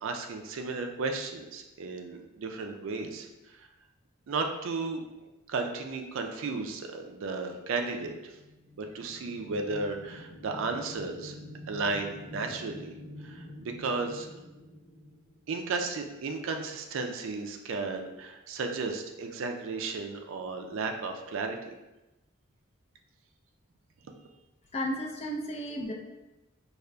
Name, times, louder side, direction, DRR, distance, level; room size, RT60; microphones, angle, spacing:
voice 1, 0.0-3.3 4.3-5.0 5.5-8.3 8.9-11.4 11.7-12.9 13.2-14.3 15.5-21.6, right 3 dB, 65° right, 4 dB, 0.4 m, -34 dB
sound 1, 8.3-15.9, left 1 dB, 65° left, 1.0 m, -47 dB
voice 2, 24.7-25.9, equal, 30° left, 1 dB, 0.4 m, -33 dB
4.9 x 2.4 x 2.2 m, 1.0 s
head